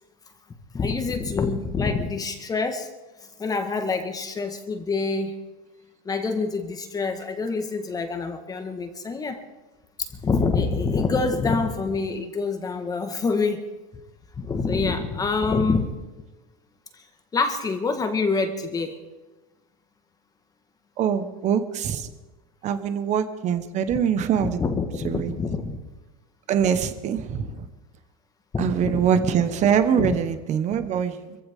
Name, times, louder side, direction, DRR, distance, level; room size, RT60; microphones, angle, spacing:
voice 1, 0.7-2.9 3.2-5.3 6.0-9.4 10.0-13.6 14.4-15.9 16.9-17.0 17.3-19.0 24.4-25.8 28.5-29.1 30.0-30.2, left 4 dB, 20° left, 6 dB, 1.6 m, -26 dB
voice 2, 21.0-22.1 22.6-24.6 25.0-25.3 26.5-27.7 28.6-31.4, right 8 dB, 35° right, 10 dB, 1.4 m, -23 dB
24.5 x 15.5 x 3.7 m, 1.1 s
supercardioid pair, 130°, 20 cm